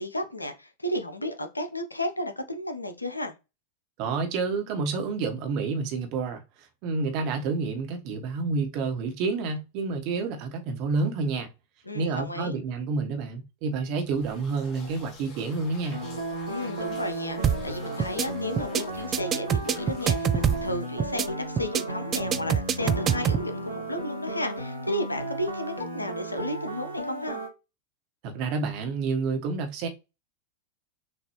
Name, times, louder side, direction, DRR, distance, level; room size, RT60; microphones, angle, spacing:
voice 1, 0.0-3.3 11.8-12.6 16.5-27.4, left 1 dB, 80° left, 0.7 m, -33 dB
voice 2, 4.0-6.4 6.8-11.5 11.9-16.0 28.2-29.9, right 4 dB, 45° right, 1.2 m, -29 dB
sound 1, 14.0-21.6, left 3 dB, 35° left, 1.5 m, -49 dB
sound 2, 15.9-27.5, right 1 dB, 90° right, 1.3 m, -34 dB
sound 3, 17.4-17.7 18.0-18.3 18.6-18.8 19.1-20.7 21.0-21.3 21.6-21.8 22.1-23.4, right 8 dB, 25° right, 0.4 m, -24 dB
6.3 x 2.6 x 3.0 m
figure-of-eight pair, 90°, 0 cm